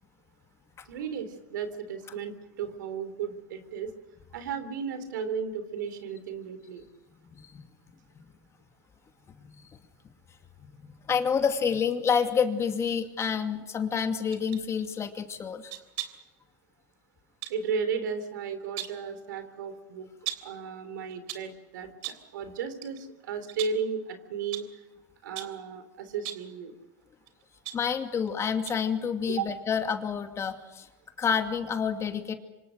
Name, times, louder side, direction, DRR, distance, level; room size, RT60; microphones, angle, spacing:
voice 1, 0.9-3.9 4.3-6.8 17.5-20.1 20.4-21.9 22.3-24.8 25.2-26.7 29.4-29.5, right 6 dB, 80° right, 10 dB, 3.5 m, -34 dB
voice 2, 7.3-7.6 9.4-9.6 10.8-15.7 27.7-30.9 31.2-32.3, left 6 dB, 30° left, 6 dB, 2.6 m, -28 dB
sound 1, 14.3-14.7 15.7-16.3 17.4-17.6 18.5-19.1 20.3-20.6 21.1-21.6 22.0-22.3 22.8-23.0 23.5-23.9 24.5-24.8 25.4-25.7 26.2-26.5 27.3-28.3 28.7-28.9 29.3-29.4, right 14 dB, 65° right, 3.2 m, -39 dB
27.0 x 25.5 x 6.5 m, 1.1 s
hypercardioid pair, 105°, 10 cm